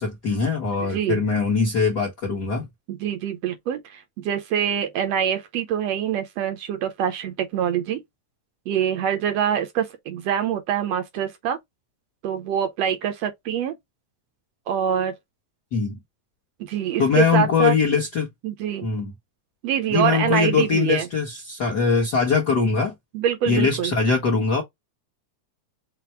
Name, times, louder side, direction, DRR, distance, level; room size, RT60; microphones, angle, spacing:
voice 1, 0.0-2.7 15.7-16.0 17.0-18.3 18.8-19.1 19.9-22.9 23.5-24.6, left 5 dB, 55° left, 1.1 m, -22 dB
voice 2, 2.9-8.0 8.7-11.6 12.2-13.7 14.7-15.1 16.6-17.7 18.4-18.9 19.6-21.1 23.1-23.9, right 9 dB, 70° right, 1.7 m, -25 dB
5.9 x 2.1 x 4.3 m
omnidirectional pair, 3.4 m